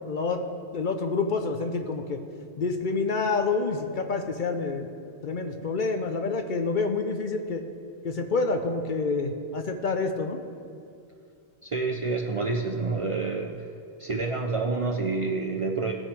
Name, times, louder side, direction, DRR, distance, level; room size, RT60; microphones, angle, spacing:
voice 1, 0.1-0.4 0.7-2.2 2.6-4.9 5.2-7.6 8.0-10.4, left 4 dB, 55° left, 6 dB, 0.7 m, -28 dB
voice 2, 11.6-13.6 14.0-15.9, right 3 dB, 40° right, 1 dB, 0.5 m, -28 dB
17.0 x 6.3 x 3.3 m, 2.4 s
omnidirectional pair, 1.1 m